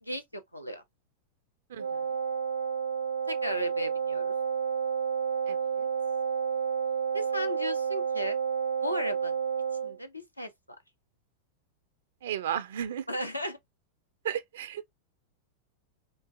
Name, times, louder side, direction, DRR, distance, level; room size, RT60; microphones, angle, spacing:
voice 1, 0.0-0.8 3.3-4.3 7.1-8.4 8.8-9.4 9.8-10.8 13.1-13.6, left 1 dB, 85° left, 0.6 m, -36 dB
voice 2, 1.7-2.0 5.5-5.9 12.2-13.1 14.2-14.9, right 10 dB, 60° right, 0.3 m, -34 dB
Wind instrument woodwind instrument, 1.8-10.0, right 6 dB, 80° right, 0.8 m, -30 dB
3.7 x 2.4 x 2.5 m
figure-of-eight pair, 90°, 0 cm